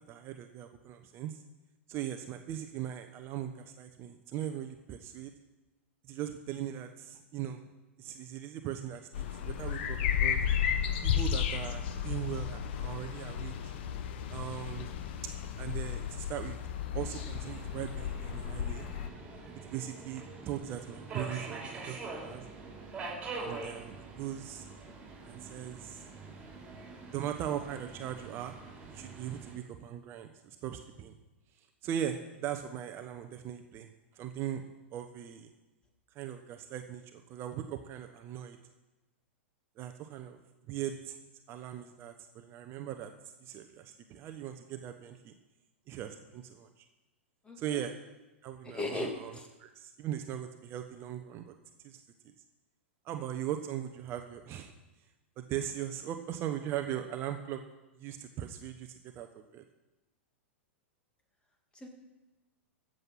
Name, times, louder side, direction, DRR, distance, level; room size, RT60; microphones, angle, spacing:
voice 1, 0.1-1.4 1.9-5.3 6.1-7.6 8.0-10.4 11.0-13.7 14.3-14.9 15.6-16.6 16.9-18.9 19.7-22.4 23.3-24.6 25.2-26.1 27.1-28.6 28.9-31.2 31.8-34.6 34.9-35.5 36.1-38.6 39.8-40.4 40.7-41.1 41.5-43.1 43.4-45.3 45.9-46.9 47.6-47.9 48.4-51.5 51.8-52.0 53.0-54.7 55.4-57.6 58.0-59.6, right 10 dB, 35° right, 7 dB, 1.0 m, -39 dB
sound 1, 9.1-19.1, left 9 dB, 55° left, 1.3 m, -33 dB
Subway metro underground, 16.9-29.5, right 3 dB, 20° right, 5.2 m, -45 dB
voice 2, 47.5-47.8 48.7-49.5 61.8-61.9, left 2 dB, 15° left, 2 dB, 2.6 m, -37 dB
14.5 x 7.8 x 5.7 m, 1.1 s
figure-of-eight pair, 100°, 7 cm